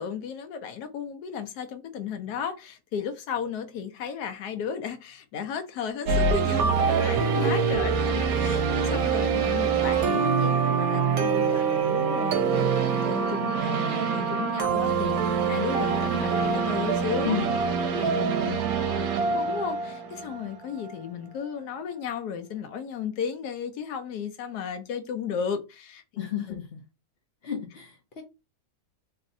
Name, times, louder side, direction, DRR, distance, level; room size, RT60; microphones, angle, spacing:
voice 1, 0.0-17.4 17.9-18.1 19.2-26.6, left 7 dB, 80° left, 1.1 m, -34 dB
sound 1, 6.1-20.9, right 6 dB, 70° right, 1.0 m, -25 dB
voice 2, 17.2-17.6 17.9-18.6 26.2-26.8 27.4-28.2, left 7 dB, 60° left, 0.6 m, -33 dB
3.1 x 2.7 x 2.5 m
omnidirectional pair, 1.7 m